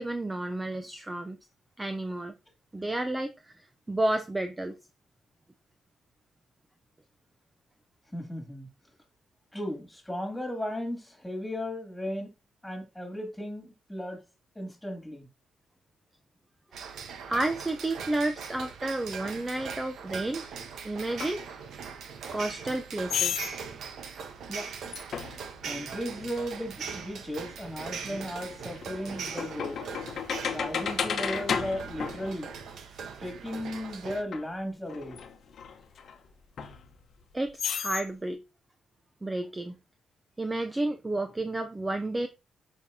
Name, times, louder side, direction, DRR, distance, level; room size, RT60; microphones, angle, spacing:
voice 1, 0.0-1.4 1.8-2.3 2.7-3.5 3.9-4.8 17.3-20.5 20.8-21.5 22.3-23.4 37.3-38.4 39.2-39.8 40.4-42.3, right 2 dB, 15° right, 0.6 m, -31 dB
voice 2, 8.1-8.7 9.5-12.3 12.6-14.2 14.5-15.3 24.5-24.7 25.6-29.8 30.5-32.5 33.2-35.2, equal, 5° left, 2.6 m, -36 dB
sound 1, 16.7-34.2, right 6 dB, 75° right, 1.0 m, -41 dB
sound 2, 21.2-21.4 23.1-23.5 24.9-25.5 27.6-27.7 28.3-32.9 34.3-34.4 34.9-36.2 36.6-37.2 37.6-38.1, left 7 dB, 60° left, 1.0 m, -33 dB
7.2 x 5.3 x 2.7 m
cardioid pair, 80°, 0 cm